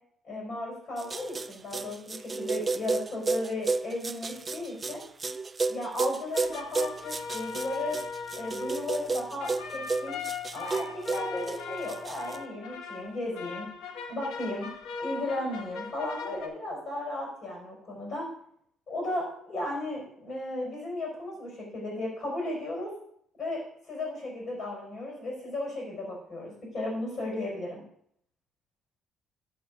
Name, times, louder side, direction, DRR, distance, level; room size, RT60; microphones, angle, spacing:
voice 1, 0.3-5.0 5.7-8.0 8.4-10.2 10.5-13.7 14.1-14.7 15.0-18.3 18.9-22.9 23.4-27.8, left 1 dB, 35° left, -2 dB, 4.4 m, -35 dB
sound 1, 1.0-12.4, right 4 dB, 20° right, 0.3 m, -32 dB
sound 2, 6.3-16.5, left 5 dB, 90° left, 1.3 m, -39 dB
12.0 x 5.2 x 5.1 m, 0.67 s
cardioid pair, 145°, 0 cm